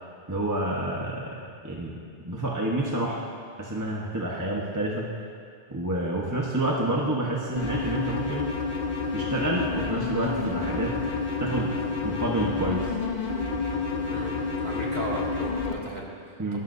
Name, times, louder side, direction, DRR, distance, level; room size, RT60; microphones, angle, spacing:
voice 1, 0.3-1.9 2.2-3.2 3.6-5.1 5.7-8.5 9.1-11.0 11.4-11.7 12.0-12.9 16.4-16.6, right 1 dB, 20° right, -3 dB, 1.2 m, -28 dB
sound 1, 7.6-15.7, left 4 dB, 60° left, 1.3 m, -29 dB
voice 2, 14.0-16.6, right 1 dB, 45° right, -4 dB, 2.5 m, -36 dB
26.5 x 13.5 x 2.7 m, 2.3 s
omnidirectional pair, 1.0 m